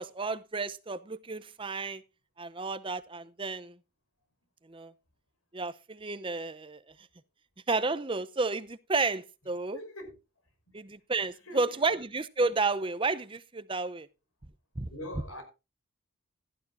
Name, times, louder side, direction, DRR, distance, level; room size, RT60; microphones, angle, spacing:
voice 1, 0.0-2.0 2.4-3.8 4.7-4.9 5.5-6.8 7.7-9.8 10.7-14.1 14.8-14.9, right 3 dB, 25° right, 0.7 m, -31 dB
voice 2, 9.7-10.1 10.7-10.8 11.5-11.9 14.9-15.4, equal, 80° left, 5.3 m, -42 dB
16.5 x 12.0 x 2.6 m
head